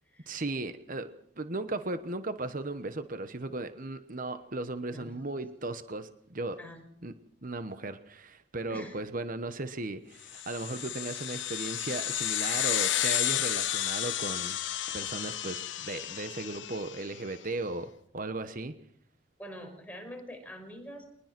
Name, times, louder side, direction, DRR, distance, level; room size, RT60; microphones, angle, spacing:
voice 1, 0.3-6.6 7.0-7.1 7.4-14.6 14.9-18.8, right 2 dB, 45° right, 10 dB, 1.1 m, -36 dB
voice 2, 8.7-9.0 19.4-21.0, equal, 10° left, 3 dB, 5.5 m, -45 dB
sound 1, 10.3-17.1, left 12 dB, 70° left, 1.0 m, -32 dB
23.0 x 20.0 x 6.1 m, 0.67 s
head